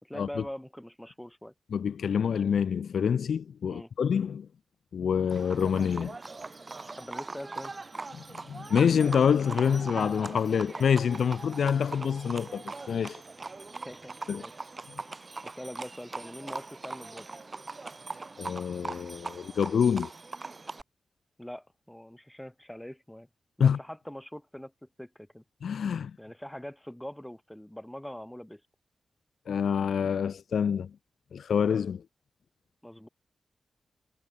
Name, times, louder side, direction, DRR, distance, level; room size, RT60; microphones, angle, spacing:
voice 1, 0.0-1.5 3.7-3.9 7.0-7.7 13.8-14.6 15.4-17.3 21.4-23.3 23.6-25.4 26.2-28.6 32.8-33.1, left 1 dB, 5° left, 4.9 m, -43 dB
voice 2, 1.7-4.5 4.9-6.2 8.2-13.2 14.3-14.4 18.4-20.1 23.6-23.8 25.6-26.1 29.5-30.9 31.3-32.0, left 7 dB, 75° left, 0.9 m, -27 dB
Livestock farm animals working animals, 5.3-20.8, right 3 dB, 30° right, 3.0 m, -41 dB
wide cardioid pair, 150°, 0 cm